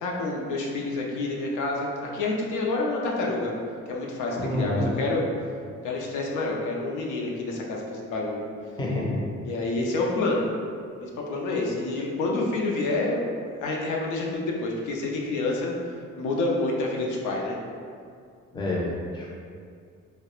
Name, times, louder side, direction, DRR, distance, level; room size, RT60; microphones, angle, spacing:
voice 1, 0.0-3.5 3.9-5.2 5.8-8.5 9.4-10.5 11.0-13.3 13.6-17.6, left 2 dB, 80° left, -2 dB, 0.5 m, -28 dB
voice 2, 4.3-4.9 8.8-9.2 18.5-19.3, left 1 dB, 15° left, -4 dB, 0.5 m, -28 dB
2.2 x 2.0 x 2.9 m, 2.2 s
cardioid pair, 90°, 30 cm